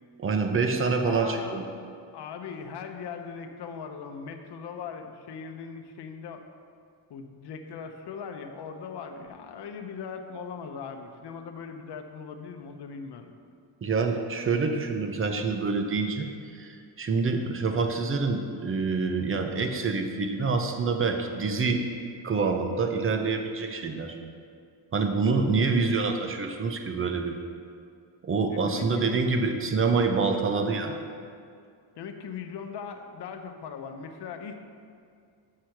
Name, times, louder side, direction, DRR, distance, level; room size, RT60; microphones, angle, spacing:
voice 1, 0.2-1.6 13.8-16.3 16.6-21.9 22.2-24.2 24.9-27.4 28.2-31.0, right 4 dB, 30° right, 5 dB, 0.6 m, -26 dB
voice 2, 1.0-1.7 2.1-6.4 7.1-13.4 28.5-29.2 29.5-29.6 32.0-34.5, left 6 dB, 65° left, 5 dB, 0.8 m, -39 dB
6.6 x 6.3 x 5.8 m, 2.3 s
wide cardioid pair, 150°, 45 cm